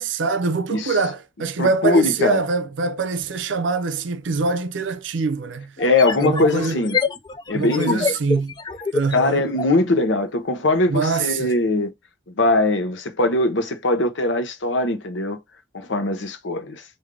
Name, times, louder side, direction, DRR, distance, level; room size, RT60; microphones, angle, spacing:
voice 1, 0.0-5.7 6.2-6.8 7.5-8.5 8.9-9.4 10.9-11.5, right 4 dB, 85° right, 0.5 m, -24 dB
voice 2, 1.6-2.4 5.8-7.0 7.5-8.1 9.1-11.9 12.3-15.4 15.7-16.8, left 2 dB, 85° left, 0.8 m, -21 dB
sound 1, 4.4-4.5 5.8-9.8, left 4 dB, 20° left, 0.3 m, -26 dB
3.7 x 2.6 x 3.2 m
head